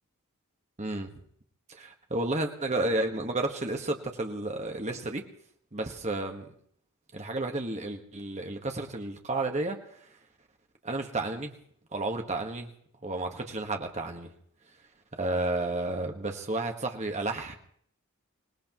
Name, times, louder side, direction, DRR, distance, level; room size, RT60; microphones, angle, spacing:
voice 1, 0.8-1.1 1.7-5.2 5.7-6.5 7.1-9.8 10.8-11.5 11.9-12.7 13.0-14.3 15.2-17.5, right 2 dB, 30° right, 4 dB, 1.4 m, -31 dB
25.0 x 18.5 x 3.1 m, 0.65 s
head